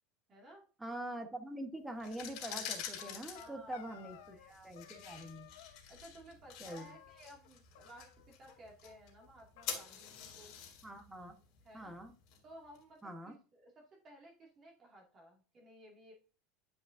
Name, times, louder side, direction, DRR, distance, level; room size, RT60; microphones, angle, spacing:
voice 1, 0.3-0.6 3.2-5.0 5.9-10.5 11.6-12.0 12.4-16.1, equal, 30° right, 0 dB, 2.0 m, -57 dB
voice 2, 0.8-4.4 4.6-5.5 6.6-6.9 10.8-11.3 11.7-12.1 13.0-13.3, right 1 dB, 5° right, 5 dB, 1.0 m, -44 dB
sound 1, 1.9-12.8, left 8 dB, 50° left, 2.5 m, -48 dB
sound 2, 2.6-4.5 4.8-5.8 6.7-7.5 7.7-8.6 8.8-8.9 9.2-9.3 9.6-10.6, left 12 dB, 75° left, 0.8 m, -57 dB
10.0 x 5.3 x 2.5 m, 0.35 s
supercardioid pair, 150°, 0 cm